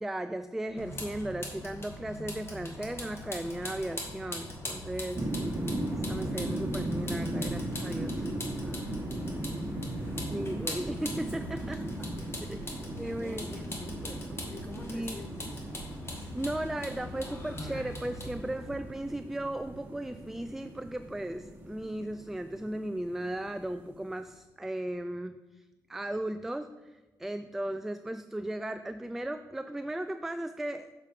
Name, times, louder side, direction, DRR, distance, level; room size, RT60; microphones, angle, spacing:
voice 1, 0.0-5.3 6.1-8.3 8.9-9.0 10.3-11.8 12.5-12.6 13.0-13.5 14.9-15.2 16.3-25.6 25.9-31.0, right 1 dB, 5° right, 10 dB, 0.3 m, -36 dB
Vehicle, 0.8-18.7, left 1 dB, 35° left, 1.9 m, -42 dB
sound 1, 5.1-24.0, right 1 dB, 25° right, 1.4 m, -37 dB
voice 2, 8.5-10.3 11.3-12.6 13.1-15.7, left 1 dB, 15° left, 3 dB, 1.4 m, -48 dB
7.2 x 5.1 x 5.6 m, 1.2 s
cardioid pair, 90°, 7 cm